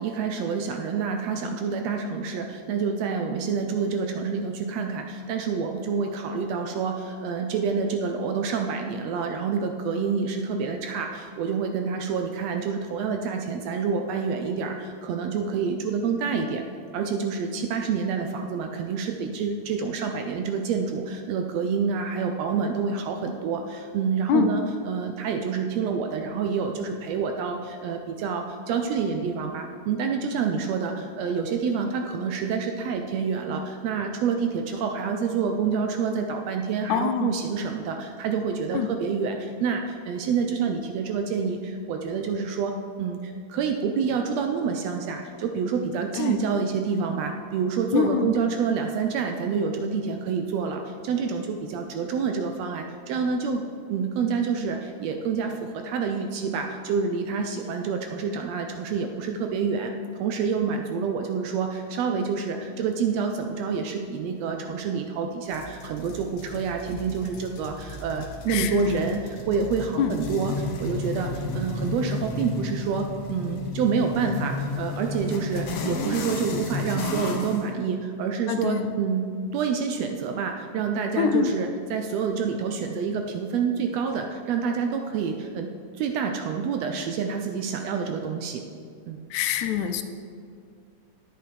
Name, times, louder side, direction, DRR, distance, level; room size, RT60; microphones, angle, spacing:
voice 1, 0.0-16.6 16.9-24.6 24.9-59.9 60.2-79.3 79.5-85.7 86.0-88.6 89.1-89.2, right 5 dB, 80° right, 4 dB, 1.6 m, -28 dB
voice 2, 36.9-37.4 38.7-38.9 46.1-46.4 47.9-48.3 68.5-69.1 70.0-70.2 78.5-78.9 81.2-81.5 89.3-90.0, left 8 dB, 85° left, 8 dB, 2.0 m, -25 dB
sound 1, 65.5-77.6, left 3 dB, 65° left, 1.5 m, -33 dB
10.0 x 8.8 x 3.3 m, 2.2 s
omnidirectional pair, 3.3 m